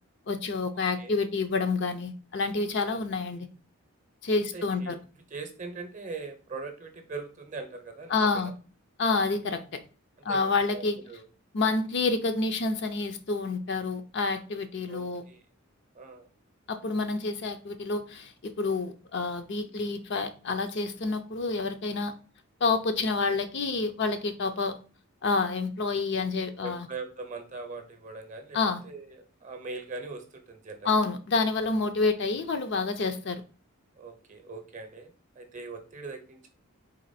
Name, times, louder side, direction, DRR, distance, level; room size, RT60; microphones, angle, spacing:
voice 1, 0.3-3.5 4.2-4.9 8.1-8.5 9.0-9.6 10.2-11.0 11.5-15.2 16.7-22.1 22.6-24.8 25.2-26.9 28.5-28.8 30.8-33.4, left 3 dB, 50° left, 0.5 m, -28 dB
voice 2, 4.5-5.0 5.3-8.5 10.3-11.2 14.9-15.4 16.0-16.3 19.6-19.8 26.6-28.6 28.8-30.9 34.0-36.5, right 3 dB, 35° right, 0.7 m, -41 dB
4.1 x 3.0 x 4.0 m
head